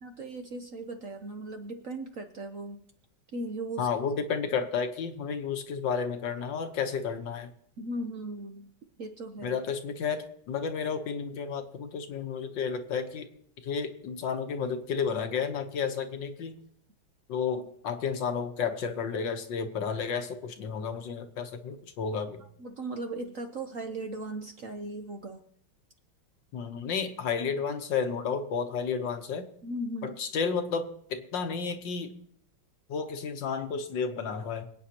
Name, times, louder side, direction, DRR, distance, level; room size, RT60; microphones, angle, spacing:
voice 1, 0.0-2.8 3.3-3.9 7.8-8.7 9.0-9.6 22.6-25.4 29.6-30.2, right 1 dB, 55° right, 5 dB, 0.9 m, -37 dB
voice 2, 3.8-7.5 9.4-13.3 13.6-16.6 17.3-22.4 26.5-29.4 30.0-32.1 32.9-34.6, left 6 dB, 70° left, 7 dB, 1.6 m, -32 dB
25.0 x 8.9 x 2.9 m, 0.67 s
omnidirectional pair, 2.1 m